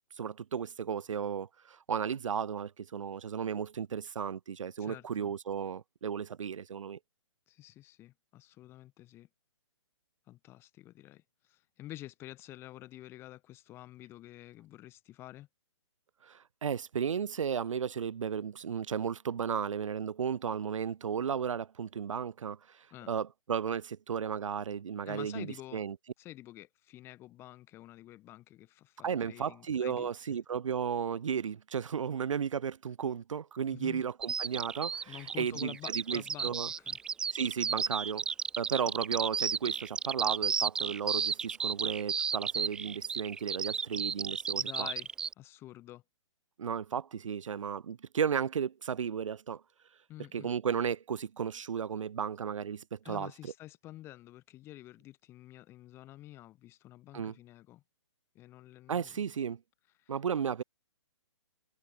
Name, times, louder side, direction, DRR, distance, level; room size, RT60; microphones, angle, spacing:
voice 1, 0.2-7.0 16.2-26.0 29.0-36.7 37.3-38.3 38.6-44.9 46.6-49.6 50.3-53.5 57.1-57.4 58.9-59.6 60.1-60.6, right 7 dB, 85° right, 0.8 m, -34 dB
voice 2, 4.8-5.3 7.5-9.3 10.3-15.5 22.9-23.1 25.0-25.9 26.2-30.1 33.7-34.0 35.1-36.5 36.8-37.0 44.6-45.1 45.4-46.0 50.1-50.5 53.0-57.8 58.4-59.2 60.0-60.1, left 15 dB, 15° left, 7.1 m, -49 dB
Bird vocalization bird call bird song, 34.2-45.3, right 6 dB, 5° right, 0.6 m, -33 dB
hypercardioid pair, 170°, 16 cm